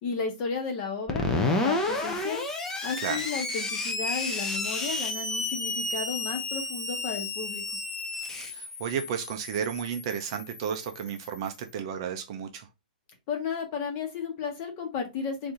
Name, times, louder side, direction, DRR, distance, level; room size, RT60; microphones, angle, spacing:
voice 1, 0.0-2.4 2.8-7.6 13.3-15.5, left 5 dB, 25° left, 1.1 m, -33 dB
Screech, 1.1-11.5, left 2 dB, 10° left, 0.5 m, -32 dB
voice 2, 8.4-12.7, right 8 dB, 35° right, 0.6 m, -33 dB
4.6 x 2.6 x 3.6 m
hypercardioid pair, 170°, 5 cm